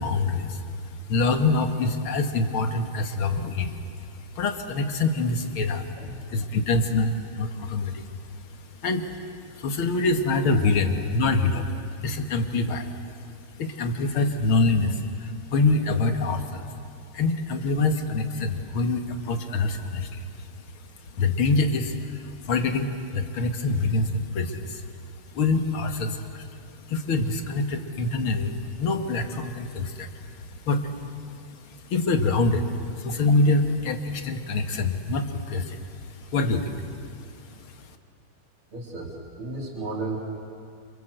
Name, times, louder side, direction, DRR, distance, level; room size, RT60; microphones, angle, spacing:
voice 1, 0.0-13.3 13.6-16.8 17.1-24.9 25.3-37.9, left 3 dB, 75° left, 6 dB, 2.5 m, -26 dB
voice 2, 38.7-40.2, right 3 dB, 85° right, -3 dB, 3.9 m, -34 dB
27.5 x 26.5 x 8.0 m, 2.4 s
omnidirectional pair, 2.3 m